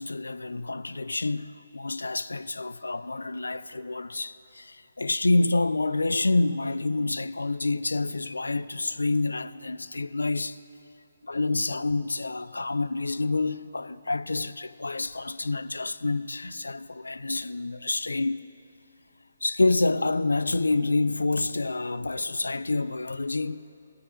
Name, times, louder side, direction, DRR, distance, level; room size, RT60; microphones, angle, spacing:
voice 1, 0.0-10.6 11.2-18.5 19.4-23.6, left 2 dB, 70° left, 0.3 m, -28 dB
18.5 x 6.5 x 2.6 m
figure-of-eight pair, 140°, 0 cm